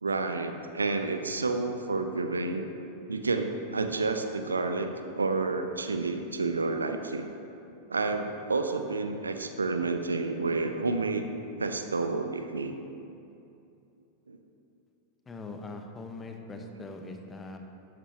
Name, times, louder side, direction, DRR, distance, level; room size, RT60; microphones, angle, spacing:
voice 1, 0.0-2.7 3.1-4.9 5.1-7.3 7.9-11.2 11.6-12.7 14.3-14.4, right 3 dB, 75° right, 7 dB, 0.7 m, -30 dB
voice 2, 15.3-17.6, left 2 dB, 15° left, 4 dB, 1.2 m, -41 dB
12.5 x 11.5 x 2.9 m, 2.7 s
figure-of-eight pair, 90°, 0 cm